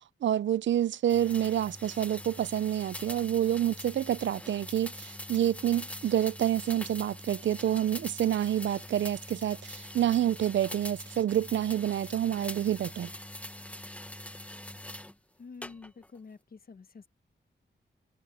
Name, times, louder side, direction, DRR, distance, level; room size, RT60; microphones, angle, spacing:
voice 1, 0.2-13.1, right 11 dB, 75° right, 0.4 m, -28 dB
sound 1, 1.1-15.1 15.6-16.2, left 1 dB, 5° left, 1.1 m, -43 dB
voice 2, 15.4-17.1, left 4 dB, 50° left, 1.4 m, -48 dB
wide cardioid pair, 130°, 19 cm